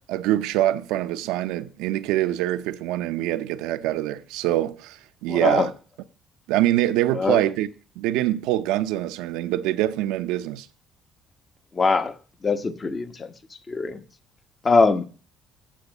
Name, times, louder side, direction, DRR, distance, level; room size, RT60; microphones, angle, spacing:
voice 1, 0.1-5.7 6.5-7.7 8.0-10.7, right 14 dB, 90° right, 0.6 m, -24 dB
voice 2, 5.3-5.7 7.2-7.4 11.8-12.1 12.4-13.3 13.7-14.0 14.6-15.0, left 4 dB, 35° left, 1.0 m, -21 dB
8.4 x 5.9 x 6.4 m
supercardioid pair, 80°, 0 cm